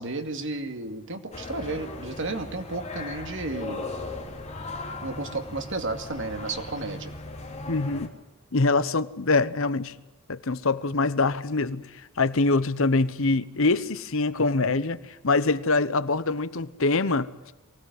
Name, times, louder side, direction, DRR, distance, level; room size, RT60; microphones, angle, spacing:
voice 1, 0.0-3.9 5.0-7.1, right 2 dB, 60° right, 2.3 m, -33 dB
sound 1, 1.3-8.1, left 2 dB, 30° left, 2.8 m, -38 dB
voice 2, 7.7-8.1 8.5-9.9 10.3-17.3, left 3 dB, 65° left, 1.0 m, -24 dB
23.5 x 17.5 x 9.6 m
head